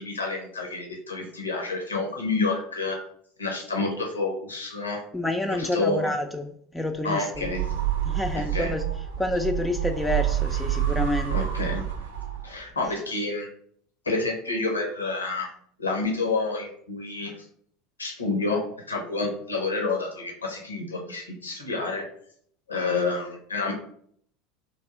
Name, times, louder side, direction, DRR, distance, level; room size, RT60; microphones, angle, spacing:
voice 1, 0.0-3.0 3.4-5.0 5.5-6.1 7.0-7.6 8.3-8.7 11.3-11.8 12.4-13.5 14.0-15.5 15.8-17.3 18.0-18.6 18.9-22.0 22.7-23.7, left 3 dB, 85° left, 0.7 m, -29 dB
voice 2, 5.1-7.5 8.0-8.8 9.2-11.4, left 1 dB, 10° left, 0.4 m, -28 dB
sound 1, 7.3-12.7, right 11 dB, 75° right, 0.6 m, -28 dB
3.3 x 2.7 x 3.6 m
figure-of-eight pair, 75°, 0 cm